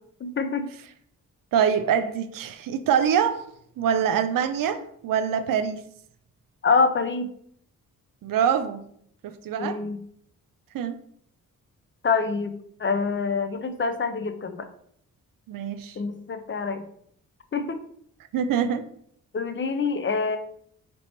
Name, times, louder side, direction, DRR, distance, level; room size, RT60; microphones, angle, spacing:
voice 1, 0.2-0.7 6.6-7.3 9.6-10.0 12.0-14.7 16.0-16.9 17.5-17.8 19.3-20.4, left 4 dB, 35° left, 8 dB, 0.5 m, -26 dB
voice 2, 1.5-3.5 3.8-5.8 8.2-8.8 9.2-9.8 10.7-11.0 15.5-16.0 18.3-18.8, right 8 dB, 75° right, 10 dB, 0.5 m, -24 dB
3.0 x 2.8 x 4.4 m, 0.65 s
cardioid pair, 60°, 34 cm